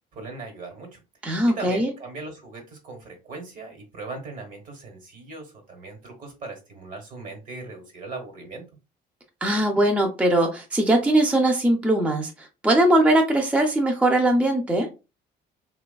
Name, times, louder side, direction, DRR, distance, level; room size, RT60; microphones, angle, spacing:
voice 1, 0.1-1.0 1.3-8.6, right 3 dB, 55° right, 4 dB, 1.2 m, -39 dB
voice 2, 1.2-1.9 9.4-14.9, right 1 dB, 10° right, 3 dB, 0.4 m, -20 dB
3.2 x 2.3 x 2.2 m, 0.29 s
cardioid pair, 110°, 17 cm